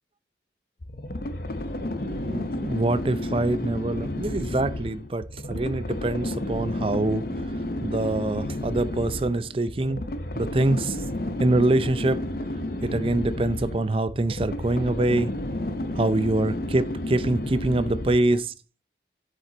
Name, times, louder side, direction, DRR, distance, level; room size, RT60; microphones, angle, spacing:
sound 1, 0.8-18.4, left 1 dB, 55° left, 0.8 m, -31 dB
voice 1, 2.0-7.2 7.8-10.0 10.3-11.0 11.4-12.3 12.8-15.3 15.9-18.4, right 2 dB, 30° right, 0.4 m, -25 dB
7.6 x 6.9 x 4.0 m
head